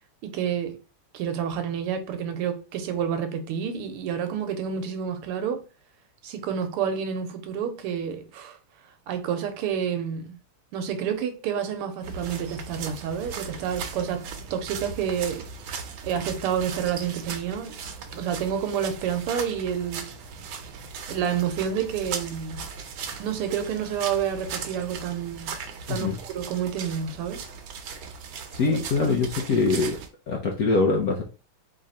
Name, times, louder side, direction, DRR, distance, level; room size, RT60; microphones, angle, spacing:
voice 1, 0.2-0.8 1.1-5.6 6.2-8.6 9.1-10.4 10.7-14.2 14.5-15.5 16.0-17.8 18.1-20.1 21.1-22.6 23.2-25.5 25.9-27.4 28.7-29.1, right 8 dB, 90° right, 1.7 m, -29 dB
sound 1, 12.0-30.1, right 5 dB, 75° right, 1.5 m, -38 dB
voice 2, 28.5-30.0 30.3-31.2, left 3 dB, 65° left, 0.9 m, -23 dB
3.7 x 3.3 x 4.1 m
omnidirectional pair, 2.4 m